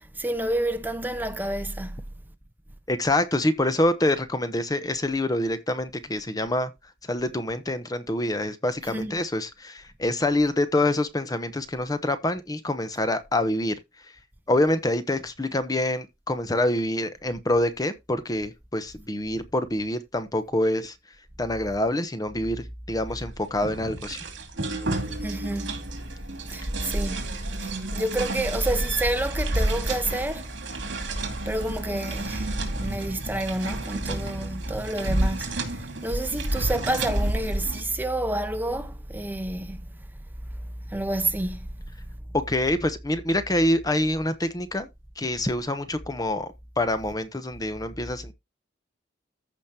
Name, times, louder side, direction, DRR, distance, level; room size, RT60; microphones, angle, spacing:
voice 1, 0.1-2.0 8.9-9.1 25.2-25.7 26.5-27.2 27.6-30.5 31.5-39.9 40.9-41.7, right 1 dB, 10° right, 0.9 m, -29 dB
voice 2, 2.9-6.7 7.1-13.7 14.5-20.9 21.4-24.2 42.3-44.9 45.2-48.3, left 1 dB, 20° left, 0.9 m, -26 dB
sound 1, 23.1-37.8, right 1 dB, 75° right, 2.7 m, -30 dB
14.5 x 5.2 x 2.8 m
head